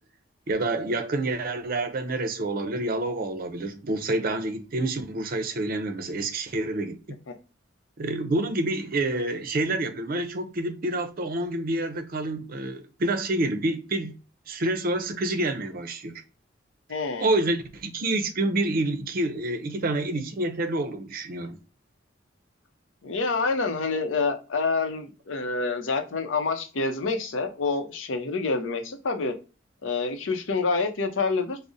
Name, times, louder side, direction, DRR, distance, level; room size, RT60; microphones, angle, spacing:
voice 1, 0.5-7.0 8.0-14.1 14.5-16.1 17.2-21.6, right 2 dB, 50° right, 0.5 m, -28 dB
voice 2, 16.9-17.3 23.0-29.3 29.8-31.6, left 4 dB, 85° left, 0.6 m, -27 dB
4.8 x 2.0 x 2.6 m
head